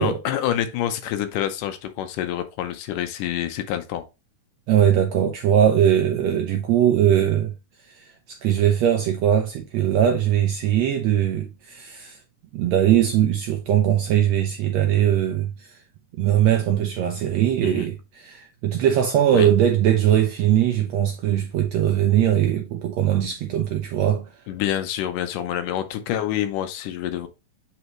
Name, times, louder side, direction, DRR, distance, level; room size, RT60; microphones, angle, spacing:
voice 1, 0.0-4.0 17.6-17.9 19.3-19.5 24.5-27.3, left 11 dB, 80° left, 2.3 m, -27 dB
voice 2, 4.7-7.5 7.8-12.2 12.5-15.8 16.2-24.3, right 10 dB, 80° right, 1.6 m, -20 dB
8.0 x 4.1 x 3.0 m
omnidirectional pair, 3.8 m